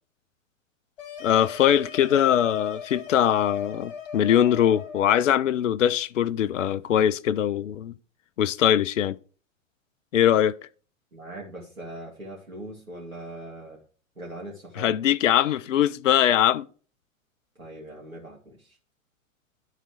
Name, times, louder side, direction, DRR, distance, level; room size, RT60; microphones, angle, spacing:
sound 1, 1.0-5.5, left 6 dB, 45° left, 2.0 m, -39 dB
voice 1, 1.2-7.9 8.4-9.2 10.1-10.6 14.8-16.7, left 10 dB, 65° left, 0.5 m, -22 dB
voice 2, 11.1-13.8 14.2-14.9 17.6-18.8, right 1 dB, 85° right, 2.2 m, -41 dB
11.5 x 4.1 x 4.7 m
figure-of-eight pair, 105°, 41 cm